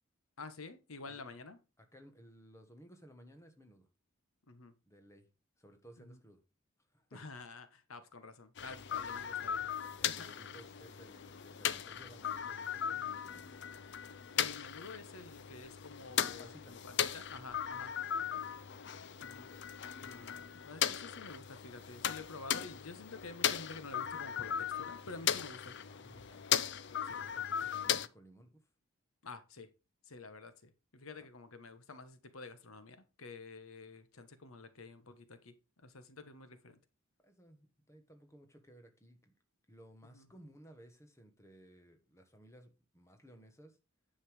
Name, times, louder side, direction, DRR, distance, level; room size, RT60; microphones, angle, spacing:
voice 1, 0.4-1.6 4.5-4.7 6.0-6.2 7.1-9.6 10.0-10.3 13.0-13.1 14.4-17.9 19.2-19.5 20.0-25.7 27.0-27.2 29.2-29.7 30.1-35.5 35.8-36.8 40.0-40.3, left 3 dB, 85° left, 1.2 m, -50 dB
voice 2, 1.8-3.9 4.9-5.3 5.6-6.4 6.9-7.2 9.2-9.3 10.0-13.5 16.4-16.7 18.2-18.5 25.9-26.6 27.2-28.6 31.2-31.3 37.2-39.3 39.7-43.8, right 1 dB, 15° left, 1.5 m, -58 dB
sound 1, 8.6-28.1, left 9 dB, 55° left, 0.6 m, -38 dB
9.9 x 5.7 x 4.9 m
head